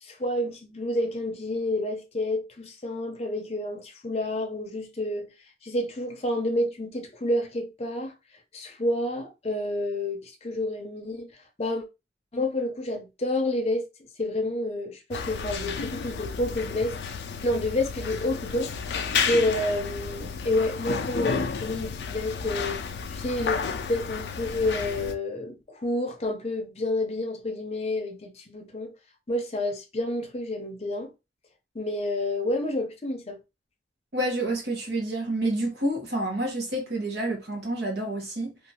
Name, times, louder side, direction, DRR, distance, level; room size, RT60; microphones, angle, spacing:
voice 1, 0.0-5.3 5.6-8.1 8.5-11.3 11.6-11.8 12.3-13.9 14.2-17.0 17.4-19.0 19.3-22.8 23.1-28.9 29.3-31.1 31.7-33.4, left 1 dB, 35° left, 0.6 m, -29 dB
sound 1, 15.1-25.1, left 5 dB, 70° left, 0.4 m, -32 dB
voice 2, 34.1-38.6, right 1 dB, 70° right, 1.1 m, -28 dB
2.7 x 2.4 x 2.7 m
head